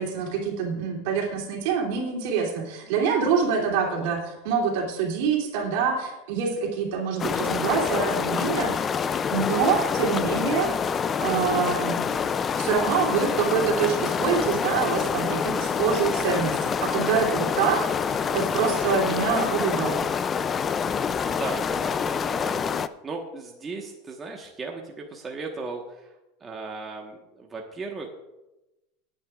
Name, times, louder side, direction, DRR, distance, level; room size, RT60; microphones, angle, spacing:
voice 1, 0.0-8.7 9.3-10.7 11.2-12.1 12.6-20.0, right 6 dB, 65° right, 0 dB, 2.9 m, -25 dB
sound 1, 7.2-22.9, left 6 dB, 25° left, 0.4 m, -26 dB
voice 2, 21.3-28.1, right 3 dB, 20° right, 0 dB, 1.3 m, -37 dB
24.5 x 9.1 x 2.4 m, 1.0 s
supercardioid pair, 135°, 0 cm